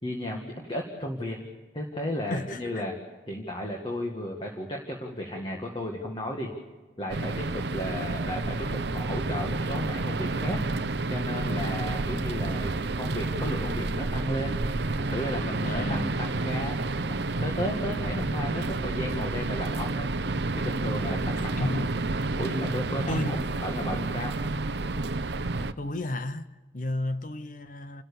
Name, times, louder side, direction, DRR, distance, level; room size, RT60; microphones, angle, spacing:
voice 1, 0.0-1.4 1.7-2.9 3.3-6.5 7.0-10.6 11.1-14.6 15.0-16.8 17.4-20.1 20.6-21.8 22.3-24.3, equal, 25° left, 2.0 m, -34 dB
voice 2, 2.3-2.9 15.6-16.2 21.6-21.9 23.1-23.4 25.8-28.0, left 1 dB, 45° left, 0.8 m, -32 dB
sound 1, 7.1-25.7, right 2 dB, 60° right, 0.7 m, -30 dB
30.0 x 13.5 x 7.0 m
head